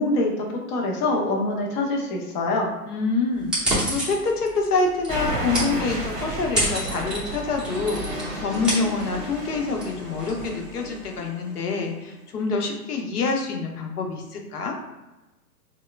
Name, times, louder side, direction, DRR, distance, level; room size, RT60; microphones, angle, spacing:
voice 1, 0.0-2.7, left 2 dB, 30° left, -1 dB, 0.5 m, -24 dB
voice 2, 2.9-14.8, left 3 dB, 70° left, 1 dB, 0.9 m, -26 dB
sound 1, 3.4-11.2, right 1 dB, ahead, 0.8 m, -31 dB
sound 2, 5.1-10.6, right 1 dB, 30° right, 1.2 m, -33 dB
sound 3, 7.6-12.6, equal, 15° left, 1.4 m, -39 dB
4.3 x 2.2 x 2.3 m, 1.0 s
hypercardioid pair, 120°, 47 cm